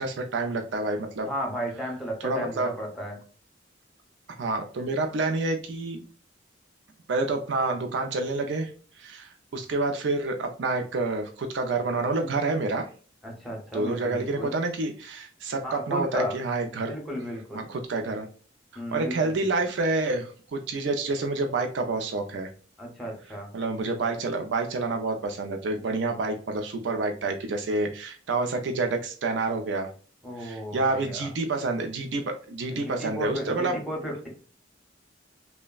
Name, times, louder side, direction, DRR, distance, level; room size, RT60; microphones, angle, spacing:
voice 1, 0.0-1.3 2.2-2.7 4.4-6.0 7.1-8.7 9.0-12.9 13.7-16.9 17.5-18.3 18.7-22.5 23.5-29.9 30.4-33.8, right 3 dB, 65° right, 5 dB, 0.4 m, -28 dB
voice 2, 1.3-3.2 13.2-14.6 15.6-16.3 16.8-17.7 18.8-19.3 22.8-23.5 30.2-31.3 32.7-34.3, equal, ahead, -1 dB, 0.7 m, -34 dB
3.2 x 2.0 x 2.2 m, 0.40 s
head